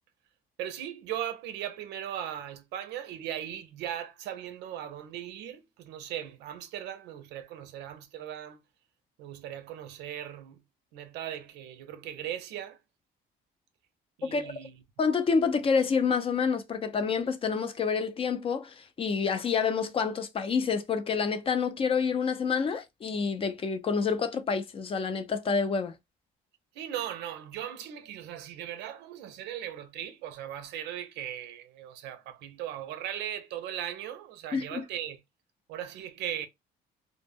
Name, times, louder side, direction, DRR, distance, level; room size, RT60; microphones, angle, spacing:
voice 1, 0.6-8.6 9.2-10.6 10.9-12.8 14.2-14.7 26.7-35.2 35.7-36.5, right 11 dB, 85° right, 0.5 m, -38 dB
voice 2, 15.0-25.9 34.5-34.8, left 5 dB, 35° left, 0.4 m, -28 dB
2.1 x 2.1 x 3.3 m
cardioid pair, 110°, 17 cm